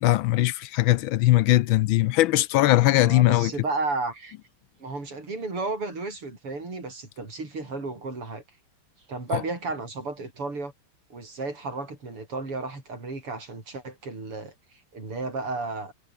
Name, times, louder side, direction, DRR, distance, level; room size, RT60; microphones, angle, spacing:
voice 1, 0.0-3.5 9.3-9.4, left 16 dB, 75° left, 1.3 m, -20 dB
voice 2, 3.0-4.4 4.8-8.4 9.1-10.7 11.1-14.5 14.9-15.9, right 3 dB, 85° right, 7.3 m, -33 dB
omnidirectional pair, 2.4 m